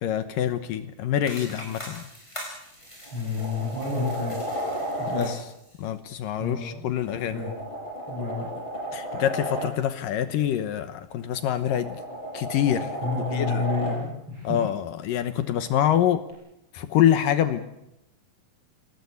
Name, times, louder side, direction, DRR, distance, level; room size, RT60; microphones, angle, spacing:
voice 1, 0.0-2.0 5.1-5.4 5.8-7.4 8.9-12.0 12.3-12.9 13.3-13.7 14.4-16.2 16.7-17.6, left 10 dB, 75° left, 10 dB, 2.7 m, -25 dB
sound 1, 1.2-5.8, equal, 5° left, 7.5 m, -43 dB
sound 2, 2.6-2.7 3.0-5.3 7.0-9.7 11.2-14.0 16.3-16.4, right 1 dB, 30° left, 7.9 m, -33 dB
voice 2, 3.1-4.4 5.0-5.3 6.4-6.9 7.2-7.5 8.1-8.5 13.0-14.6, left 4 dB, 35° right, -5 dB, 8.6 m, -30 dB
27.5 x 18.5 x 8.4 m, 0.84 s
omnidirectional pair, 4.1 m